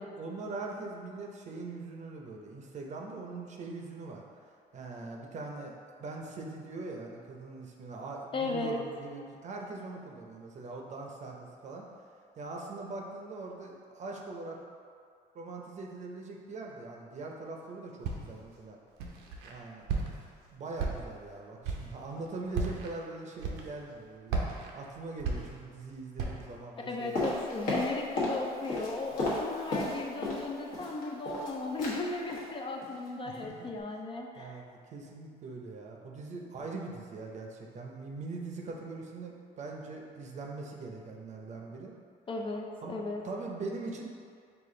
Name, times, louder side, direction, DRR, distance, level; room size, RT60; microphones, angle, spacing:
voice 1, 0.1-4.2 4.7-11.8 12.4-14.6 15.3-18.8 19.4-19.9 20.5-24.4 24.7-27.4 33.2-33.7 34.4-41.9 42.8-43.0 43.2-44.1, right 3 dB, 45° right, 0 dB, 0.6 m, -42 dB
voice 2, 8.3-8.8 26.9-34.6 42.3-43.2, left 3 dB, 30° left, 1 dB, 0.4 m, -36 dB
Walk footsteps, 18.0-18.5 19.0-19.5 19.9-20.4 20.8-21.3 21.6-22.0 22.5-22.9 23.4-23.9 24.3-25.8 26.2-26.6, right 4 dB, 90° right, 0.6 m, -34 dB
sound 1, 27.1-28.4 28.6-30.4 30.7-31.5 31.8-32.0 32.3-32.5 32.8-33.1 33.3-33.4, left 2 dB, 55° left, 1.2 m, -33 dB
5.0 x 2.4 x 3.7 m, 2.2 s
cardioid pair, 110°, 17 cm